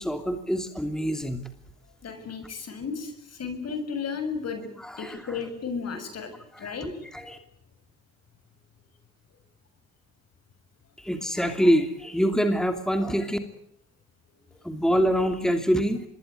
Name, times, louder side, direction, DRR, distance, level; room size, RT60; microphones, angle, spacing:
voice 1, 0.0-1.5 4.8-5.4 6.5-6.8 7.1-7.4 11.0-13.4 14.6-16.0, equal, ahead, 6 dB, 2.9 m, -25 dB
voice 2, 2.0-4.7 5.0-6.3 6.6-6.9, left 5 dB, 55° left, 9 dB, 7.2 m, -33 dB
25.5 x 21.5 x 9.6 m, 0.74 s
cardioid pair, 90°, 30 cm